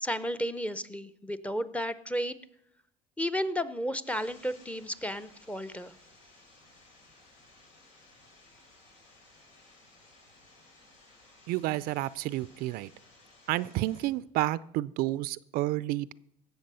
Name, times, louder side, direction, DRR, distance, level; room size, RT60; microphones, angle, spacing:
voice 1, 0.0-2.4 3.2-5.9, equal, 10° left, 14 dB, 0.6 m, -33 dB
sound 1, 4.0-14.1, left 2 dB, 85° left, 3.4 m, -58 dB
voice 2, 11.5-12.9 13.5-16.1, right 16 dB, 65° right, 19 dB, 0.4 m, -30 dB
17.5 x 6.8 x 5.5 m, 0.76 s
supercardioid pair, 90°, 17 cm